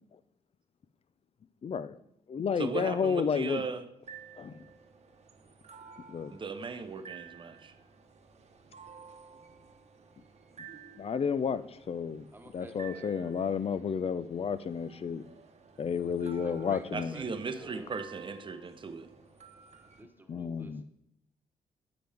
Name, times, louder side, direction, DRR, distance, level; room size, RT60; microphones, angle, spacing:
voice 1, 1.6-2.0 2.3-3.6 4.4-4.6 6.1-6.3 11.0-12.3 12.5-15.2 15.8-17.1 20.3-20.8, left 6 dB, 45° left, 14 dB, 0.5 m, -31 dB
voice 2, 2.6-3.8 6.3-7.7 16.9-19.1, right 4 dB, 35° right, 8 dB, 0.8 m, -37 dB
sound 1, 4.0-20.0, right 6 dB, 50° right, 1.2 m, -53 dB
voice 3, 12.3-13.3 16.0-17.9 20.0-20.8, right 2 dB, 15° right, 5 dB, 1.3 m, -50 dB
10.0 x 7.8 x 3.5 m, 0.80 s
cardioid pair, 85°, 14 cm